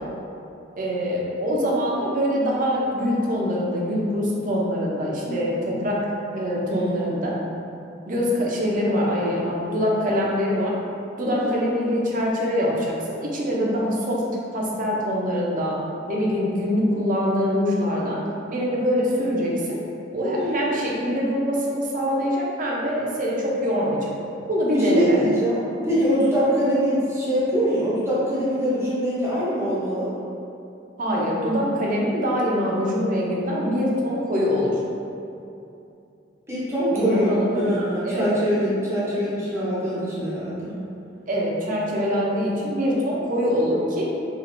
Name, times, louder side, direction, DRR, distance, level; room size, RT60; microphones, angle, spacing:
voice 1, 0.8-6.0 6.3-7.4 8.1-10.8 11.2-14.2 14.5-15.8 16.1-18.2 18.5-19.8 20.1-24.1 24.5-25.2 31.0-34.8 36.9-37.7 38.0-38.3 41.3-44.1, equal, 45° right, -4 dB, 0.6 m, -24 dB
voice 2, 6.7-7.1 11.2-11.6 20.2-20.8 24.7-30.1 36.5-40.8, equal, 15° right, -9 dB, 0.7 m, -23 dB
4.2 x 2.5 x 2.6 m, 2.7 s
head